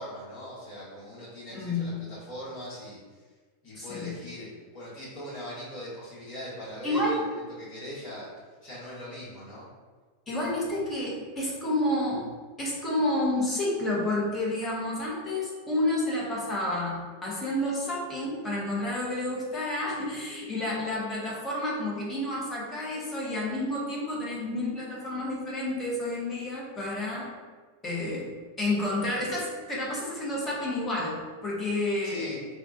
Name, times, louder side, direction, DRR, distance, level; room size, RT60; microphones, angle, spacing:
voice 1, 0.0-3.0 3.6-4.5 4.7-8.3 8.6-9.7 32.0-32.4, left 1 dB, 40° left, -8 dB, 1.2 m, -40 dB
voice 2, 1.5-1.9 3.7-4.1 6.8-7.2 10.3-12.2 12.6-27.3 27.8-28.3 28.6-32.3, left 1 dB, 20° left, -5 dB, 0.9 m, -30 dB
3.5 x 2.4 x 2.4 m, 1.4 s
figure-of-eight pair, 90°, 0 cm